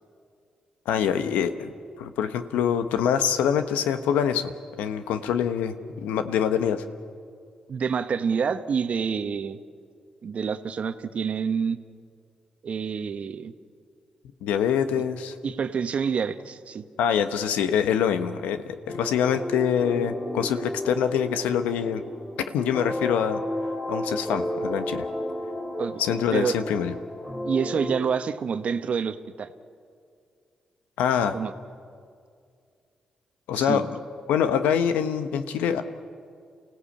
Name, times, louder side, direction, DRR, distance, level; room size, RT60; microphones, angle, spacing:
voice 1, 0.9-1.7 2.0-4.5 4.8-6.8 14.4-15.3 17.0-22.0 22.5-23.4 23.9-25.0 26.0-26.9 31.0-31.3 33.5-33.8 34.3-35.8, left 8 dB, 90° left, 9 dB, 1.1 m, -25 dB
voice 2, 7.7-9.6 10.2-11.8 12.6-13.5 15.4-16.8 25.8-26.6 27.4-29.5 31.3-31.5 33.5-33.8, right 6 dB, 60° right, 10 dB, 1.2 m, -27 dB
sound 1, 18.9-28.0, left 1 dB, 15° left, 2.7 m, -33 dB
28.5 x 16.0 x 8.6 m, 2.3 s
supercardioid pair, 55°, 2 cm